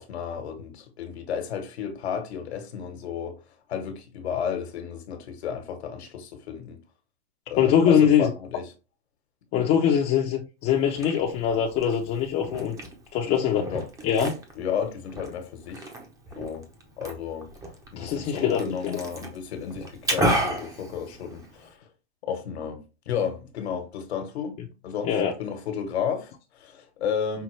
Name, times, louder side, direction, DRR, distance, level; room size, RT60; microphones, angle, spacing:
voice 1, 0.0-3.4 3.7-6.8 7.5-8.7 13.6-13.8 14.5-15.9 16.4-16.6 17.0-17.5 17.9-21.9 22.2-24.5 24.8-27.4, left 7 dB, 80° left, 1.4 m, -32 dB
voice 2, 7.6-8.3 9.5-12.8 13.1-13.7 14.0-14.4 18.0-18.9 25.0-25.3, left 8 dB, 30° left, 0.6 m, -22 dB
Liquid, 10.7-21.7, right 1 dB, 10° right, 0.7 m, -33 dB
5.6 x 2.4 x 3.2 m
hypercardioid pair, 140°, 32 cm